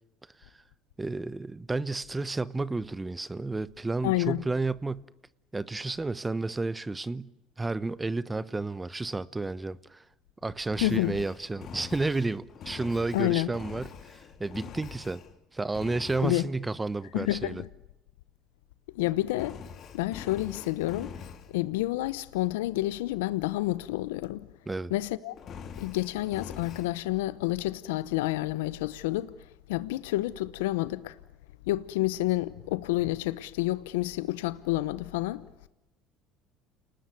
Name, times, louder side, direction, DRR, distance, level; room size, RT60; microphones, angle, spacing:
voice 1, 1.0-5.1 5.5-7.3 7.6-10.0 10.4-15.2 15.5-17.6 24.7-24.9, right 3 dB, 15° right, 1.0 m, -31 dB
voice 2, 4.0-4.4 10.8-11.1 13.1-13.5 16.2-16.4 17.1-17.7 18.9-19.6 19.9-21.2 21.5-24.5 24.9-25.3 25.8-29.3 29.7-31.2 31.7-35.4, left 17 dB, 90° left, 0.9 m, -29 dB
Engine, 10.7-15.4 15.7-16.5 19.3-21.5 25.3-26.9, left 7 dB, 50° left, 3.3 m, -44 dB
29.0 x 20.0 x 9.4 m
supercardioid pair, 90°, 0 cm